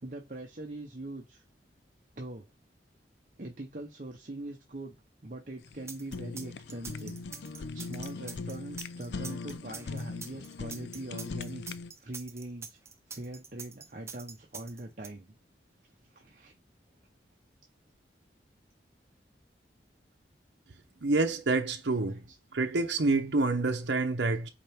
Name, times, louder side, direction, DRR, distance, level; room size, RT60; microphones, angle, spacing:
voice 1, 0.0-1.4 2.2-2.5 3.3-5.0 5.2-7.2 7.5-11.6 12.0-12.8 13.1-15.3 16.0-16.5 22.3-22.4, right 2 dB, 45° right, 0.9 m, -42 dB
Fire, 5.6-11.9, left 4 dB, 75° left, 0.5 m, -40 dB
sound 1, 5.9-15.1, right 5 dB, 15° right, 0.5 m, -44 dB
voice 2, 21.0-22.2 22.5-24.5, right 3 dB, 80° right, 0.8 m, -27 dB
8.4 x 4.3 x 3.5 m
head